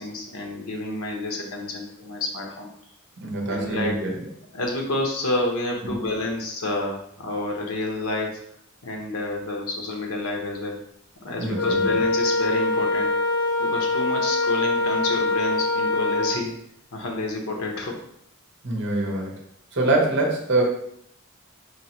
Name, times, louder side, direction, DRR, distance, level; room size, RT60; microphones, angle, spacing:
voice 1, 0.0-2.7 3.5-3.9 4.5-8.4 8.8-10.8 11.2-13.2 13.6-16.6 16.9-18.0, left 2 dB, 85° left, 1 dB, 0.9 m, -29 dB
voice 2, 3.2-4.1 5.8-6.0 11.4-11.9 18.6-19.3 19.7-20.6, right 2 dB, 55° right, 0 dB, 0.9 m, -24 dB
Wind instrument woodwind instrument, 11.5-16.4, left 3 dB, 60° left, 0.6 m, -23 dB
4.7 x 2.8 x 2.9 m, 0.72 s
head